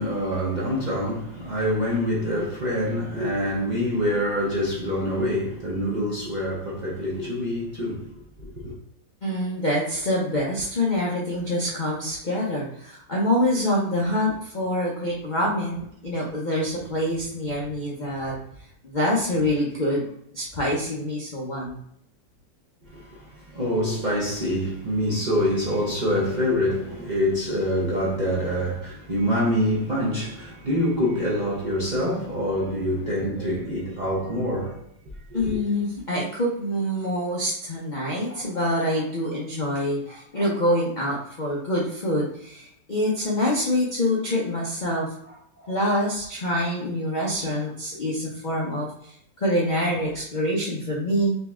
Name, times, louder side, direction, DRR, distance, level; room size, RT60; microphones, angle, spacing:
voice 1, 0.0-8.1 8.6-8.8 22.9-34.8 35.3-35.6, equal, 35° right, 0.7 m, -25 dB
voice 2, 9.2-18.3 18.8-21.8 35.3-51.4, left 1 dB, 45° left, 0.6 m, -26 dB
4.0 x 3.1 x 3.5 m
omnidirectional pair, 2.0 m